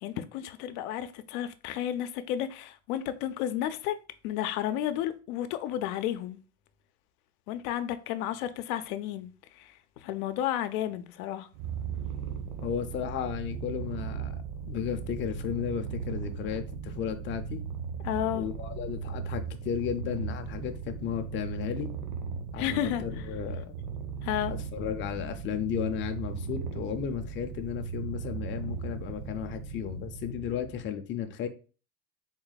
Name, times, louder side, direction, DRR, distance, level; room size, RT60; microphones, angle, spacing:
voice 1, 0.0-4.0 4.2-6.4 7.5-11.5 18.0-18.5 22.6-23.3 24.2-24.5, left 11 dB, 85° left, 0.6 m, -32 dB
Purr, 11.5-30.9, right 6 dB, 60° right, 0.9 m, -37 dB
voice 2, 12.6-14.3 14.7-17.6 18.3-21.9 22.5-23.8 24.5-31.5, left 9 dB, 30° left, 0.4 m, -34 dB
3.7 x 2.2 x 4.0 m
supercardioid pair, 120°, 43 cm